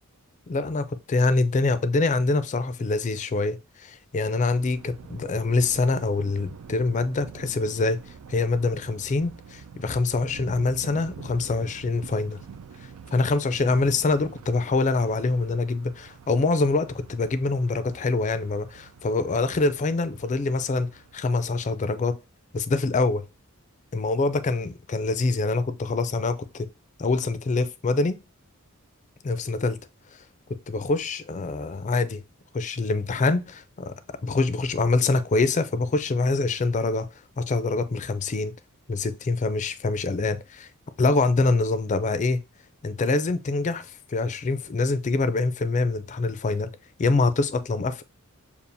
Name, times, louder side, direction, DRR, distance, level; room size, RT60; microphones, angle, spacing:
voice 1, 0.5-8.0 8.3-12.4 13.1-22.2 22.5-23.2 23.9-26.7 27.0-28.2 29.2-29.8 30.7-32.2 32.5-33.9 34.2-37.1 37.4-38.5 38.9-40.7 41.0-42.4 42.8-46.7 47.0-48.0, left 3 dB, 35° left, 0.4 m, -25 dB
Thunder, 4.2-21.6, right 6 dB, 80° right, 0.4 m, -46 dB
6.9 x 2.4 x 2.6 m
head